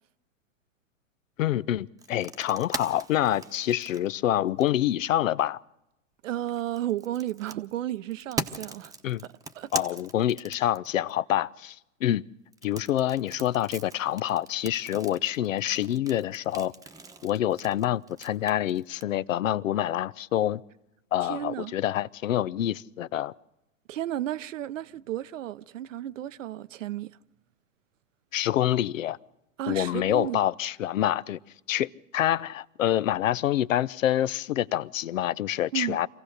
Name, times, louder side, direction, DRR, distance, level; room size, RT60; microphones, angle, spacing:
voice 1, 1.4-5.6 9.0-9.2 9.7-11.8 12.0-12.2 12.6-16.7 17.2-20.6 21.1-23.3 28.3-29.2 29.7-31.4 31.7-36.1, left 12 dB, 75° left, 0.7 m, -26 dB
sound 1, 2.0-4.9 6.3-11.1 12.5-19.0, right 3 dB, 10° right, 1.0 m, -39 dB
voice 2, 6.2-8.9 9.5-9.7 21.2-21.7 23.9-27.1 29.6-30.4 35.7-36.0, right 12 dB, 70° right, 0.8 m, -33 dB
25.5 x 15.5 x 6.6 m
hypercardioid pair, 105°, 39 cm